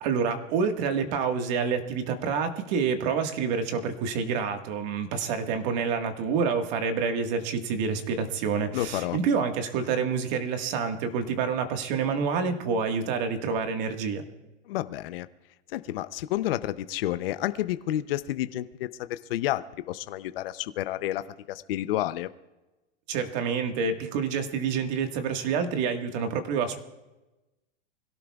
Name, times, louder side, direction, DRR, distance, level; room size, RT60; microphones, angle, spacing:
voice 1, 0.0-14.2 23.1-26.8, right 5 dB, 40° right, 6 dB, 1.6 m, -28 dB
voice 2, 8.7-9.2 14.7-15.3 15.7-21.2 21.5-22.3, left 14 dB, 55° left, 12 dB, 0.7 m, -30 dB
26.0 x 17.0 x 2.4 m, 1.0 s
supercardioid pair, 165°, 36 cm